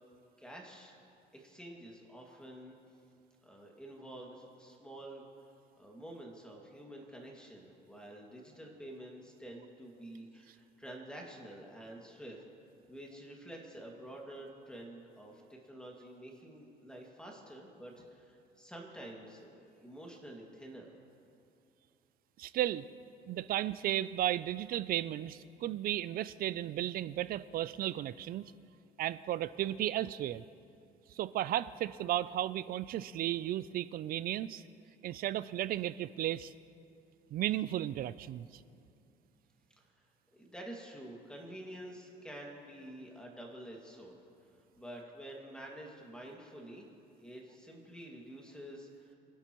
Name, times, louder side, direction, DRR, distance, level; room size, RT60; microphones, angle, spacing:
voice 1, 0.4-0.9 1.3-2.7 3.4-5.3 5.8-12.4 12.9-20.9 39.8-40.0 40.3-44.2 44.8-46.9 47.2-49.1, right 1 dB, 5° left, -1 dB, 2.2 m, -49 dB
voice 2, 22.4-22.9 23.3-28.4 29.0-30.4 31.1-34.6 35.0-36.5 37.3-38.5, right 13 dB, 60° right, 16 dB, 0.4 m, -34 dB
25.5 x 11.0 x 3.1 m, 2.5 s
cardioid pair, 110°, 17 cm